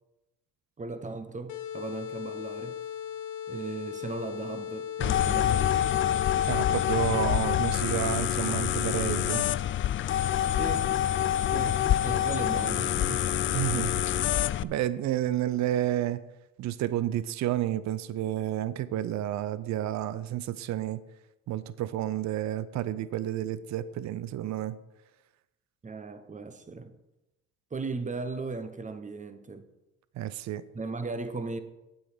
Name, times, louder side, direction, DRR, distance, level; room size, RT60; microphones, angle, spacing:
voice 1, 0.8-2.8 3.5-5.8 10.5-10.9 11.5-13.3 25.8-26.9 27.7-29.7 30.7-31.6, right 3 dB, 25° right, 1.1 m, -37 dB
sound 1, 1.5-7.4, left 9 dB, 65° left, 0.9 m, -38 dB
sound 2, 5.0-14.6, left 11 dB, 40° left, 0.4 m, -26 dB
voice 2, 6.5-9.4 13.5-14.0 14.6-16.2 16.6-21.0 21.5-24.8 30.1-30.6, right 12 dB, 60° right, 0.6 m, -30 dB
8.9 x 7.7 x 5.0 m
supercardioid pair, 80°, 32 cm